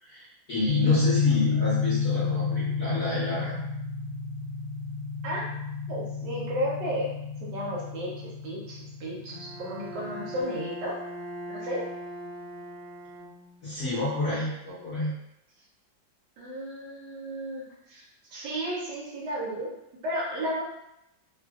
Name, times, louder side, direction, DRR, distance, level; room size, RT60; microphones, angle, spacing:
voice 1, 0.0-3.6 13.6-15.1, left 2 dB, 50° left, -10 dB, 0.9 m, -29 dB
sound 1, 0.7-10.4, left 5 dB, 75° left, 1.3 m, -30 dB
voice 2, 5.9-7.1 7.4-11.0 11.5-11.8 16.4-18.1 18.3-19.7 20.0-20.6, equal, 70° right, -5 dB, 1.3 m, -33 dB
Bowed string instrument, 9.3-13.8, right 1 dB, 90° right, 1.4 m, -40 dB
3.2 x 2.3 x 2.3 m, 0.83 s
omnidirectional pair, 2.1 m